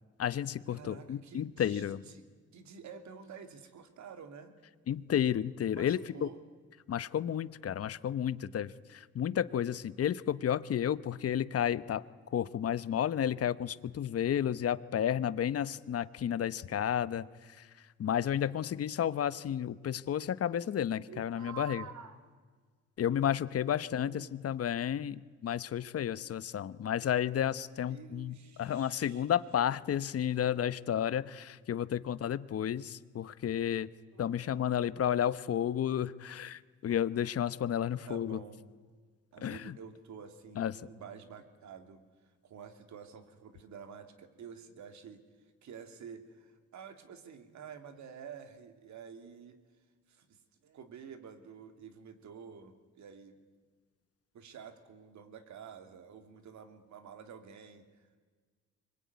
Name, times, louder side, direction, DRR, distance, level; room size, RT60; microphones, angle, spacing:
voice 1, 0.2-2.0 4.9-6.3 6.9-12.0 12.3-17.3 17.6-17.7 18.0-21.8 23.0-33.9 34.2-38.4 39.4-39.7 40.6-40.7, left 9 dB, 50° left, 16 dB, 1.0 m, -32 dB
voice 2, 0.7-2.2 2.5-4.6 5.7-6.4 21.0-22.2 23.4-23.5 23.9-24.3 27.9-29.2 33.4-33.6 34.1-35.1 36.2-36.4 37.8-38.7 39.3-49.6 50.1-53.4 54.3-58.1, right 7 dB, 70° right, 7 dB, 2.9 m, -50 dB
25.0 x 21.5 x 9.6 m, 1.5 s
cardioid pair, 90°, 30 cm